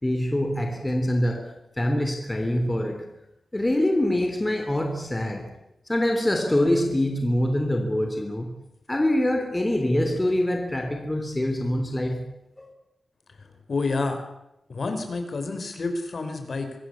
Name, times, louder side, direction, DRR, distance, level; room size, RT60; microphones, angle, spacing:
voice 1, 0.0-3.1 3.5-5.5 5.9-8.5 8.9-12.2 12.6-12.7, left 1 dB, 15° left, 4 dB, 3.1 m, -24 dB
voice 2, 13.4-14.2 14.7-16.8, left 3 dB, 50° left, 6 dB, 5.3 m, -29 dB
24.5 x 20.0 x 8.5 m, 0.85 s
wide cardioid pair, 135°, 0 cm